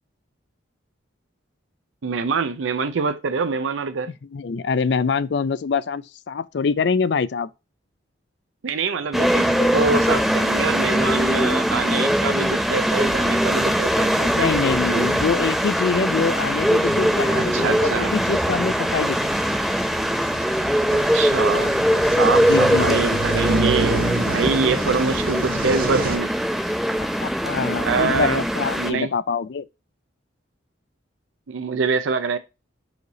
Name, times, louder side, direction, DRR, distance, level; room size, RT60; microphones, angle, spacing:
voice 1, 2.0-4.1 8.6-14.5 14.9-15.1 17.4-18.1 20.9-21.8 22.0-26.3 27.8-28.4 28.8-29.1 31.5-32.4, right 4 dB, 80° right, 0.5 m, -25 dB
voice 2, 4.3-7.5 14.3-19.4 22.5-23.2 27.0-29.6, left 5 dB, 60° left, 0.4 m, -25 dB
sound 1, 9.1-28.9, equal, ahead, 0.5 m, -21 dB
sound 2, 11.2-26.2, right 2 dB, 50° right, 1.2 m, -31 dB
4.9 x 4.8 x 3.9 m
head